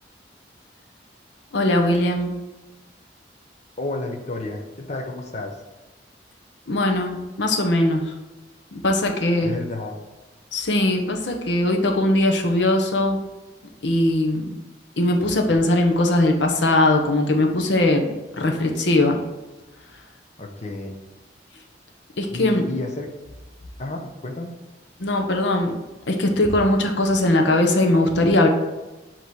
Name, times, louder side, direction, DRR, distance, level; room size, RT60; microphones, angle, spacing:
voice 1, 1.5-2.3 6.7-8.0 8.7-9.5 10.5-13.2 13.8-14.6 15.0-19.2 22.2-22.6 25.0-25.8 26.1-28.5, left 1 dB, 75° left, 3 dB, 0.8 m, -20 dB
voice 2, 3.8-5.5 9.4-10.0 20.4-21.0 22.3-23.1 23.8-24.5, left 2 dB, 40° left, 3 dB, 0.8 m, -31 dB
8.1 x 3.0 x 4.7 m, 1.1 s
head